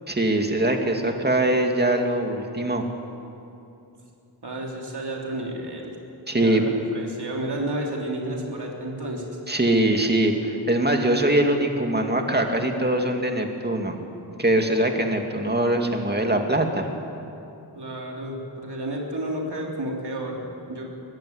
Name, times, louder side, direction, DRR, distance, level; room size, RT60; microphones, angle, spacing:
voice 1, 0.1-2.9 6.3-6.6 9.5-14.0 14.4-16.9, right 1 dB, 25° right, 3 dB, 2.4 m, -22 dB
voice 2, 4.4-6.0 6.3-9.4 17.7-20.8, right 1 dB, 70° right, -1 dB, 3.7 m, -31 dB
21.5 x 15.0 x 9.6 m, 2.8 s
wide cardioid pair, 70°, 42 cm